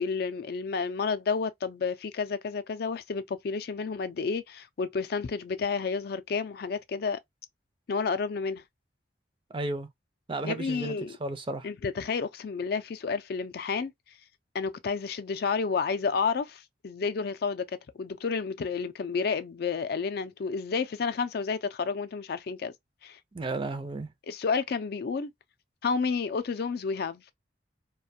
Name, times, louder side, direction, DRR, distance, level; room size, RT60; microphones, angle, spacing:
voice 1, 0.0-7.2 7.9-8.6 10.4-11.2 11.6-13.9 14.5-22.7 23.0-23.2 24.3-25.3 25.8-27.2, left 5 dB, 60° left, 0.4 m, -30 dB
voice 2, 9.5-9.9 10.3-10.9 11.2-11.7 23.3-24.1, right 2 dB, 30° right, 0.4 m, -33 dB
2.5 x 2.2 x 2.6 m
head